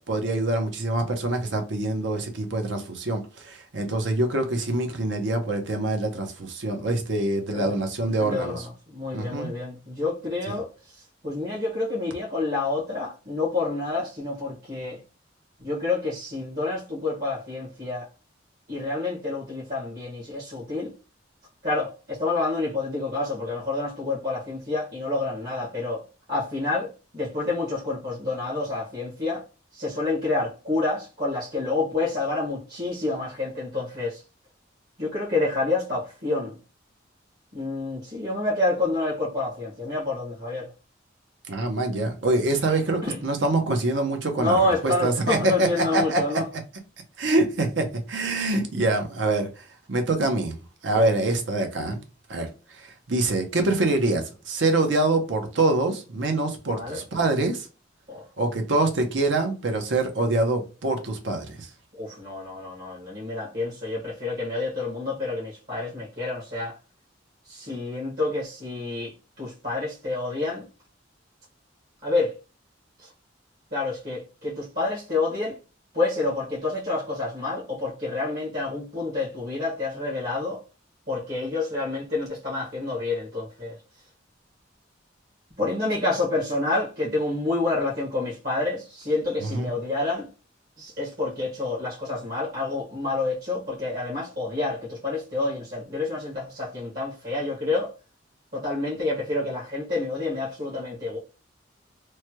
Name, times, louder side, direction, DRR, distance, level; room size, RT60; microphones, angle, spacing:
voice 1, 0.0-8.6 9.1-9.5 10.5-10.6 41.5-46.2 47.2-50.6 50.8-52.0 52.3-52.5 52.8-57.7 58.4-61.7 89.4-89.7, right 2 dB, 70° right, 0.7 m, -25 dB
voice 2, 8.2-15.0 15.6-18.1 18.7-20.9 21.6-26.0 26.3-29.4 29.7-34.2 35.0-36.6 37.5-40.7 43.0-43.2 44.3-46.5 50.9-51.1 56.7-57.0 58.1-58.2 61.9-66.8 67.5-70.6 72.0-72.4 73.0-73.1 73.7-75.6 75.9-80.6 81.1-83.8 85.6-90.3 90.8-97.9 98.5-101.2, left 2 dB, 55° right, 1.3 m, -28 dB
3.1 x 2.2 x 2.9 m
head